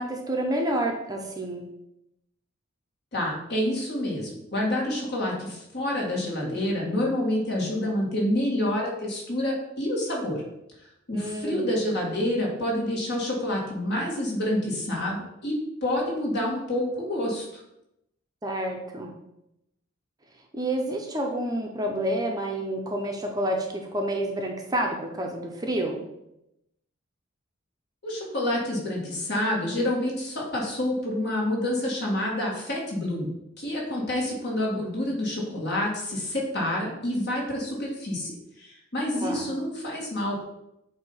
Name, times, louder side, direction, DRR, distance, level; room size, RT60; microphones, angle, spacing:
voice 1, 0.0-1.6 11.1-11.8 18.4-19.1 20.5-26.0 39.2-39.5, right 1 dB, 20° right, 2 dB, 0.7 m, -29 dB
voice 2, 3.1-10.4 11.1-15.5 15.8-17.6 28.0-33.3 33.6-40.4, left 1 dB, 55° left, -2 dB, 2.0 m, -28 dB
7.8 x 2.8 x 5.5 m, 0.85 s
head